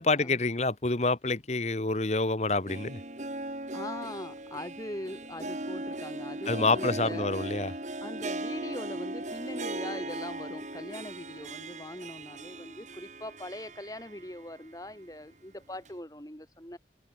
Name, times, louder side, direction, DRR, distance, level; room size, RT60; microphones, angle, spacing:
voice 1, 0.0-3.0 6.5-7.7, left 3 dB, 40° left, 1.1 m, -27 dB
Harp, 2.4-14.6 14.9-15.0 15.9-16.0, right 1 dB, 40° right, 3.7 m, -38 dB
voice 2, 3.7-7.3 8.0-16.8, left 1 dB, 20° left, 3.8 m, -41 dB
open air
head